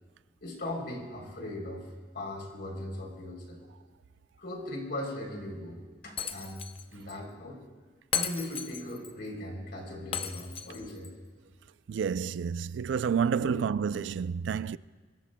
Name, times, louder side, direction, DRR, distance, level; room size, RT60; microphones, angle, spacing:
voice 1, 0.4-1.9 2.1-3.6 4.4-6.6 6.9-7.6 8.1-11.1 13.4-13.6, left 1 dB, 60° left, 3.3 m, -39 dB
Shatter, 6.2-6.8 7.1-7.2 8.1-9.1 10.1-11.1, left 8 dB, 30° left, 0.6 m, -35 dB
voice 2, 11.9-14.8, right 7 dB, 80° right, 0.3 m, -29 dB
23.5 x 22.0 x 2.2 m
head